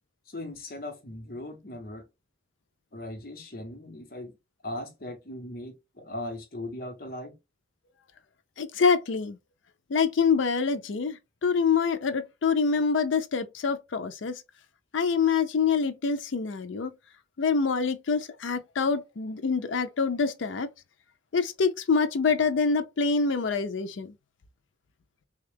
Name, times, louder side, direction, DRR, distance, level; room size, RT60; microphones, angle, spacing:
voice 1, 0.3-2.1 2.9-4.4 4.6-7.4, left 1 dB, 50° left, 0.9 m, -39 dB
voice 2, 8.6-9.4 9.9-14.4 14.9-16.9 17.4-20.7 21.3-24.1, left 5 dB, 90° left, 0.5 m, -26 dB
3.5 x 2.3 x 3.4 m
head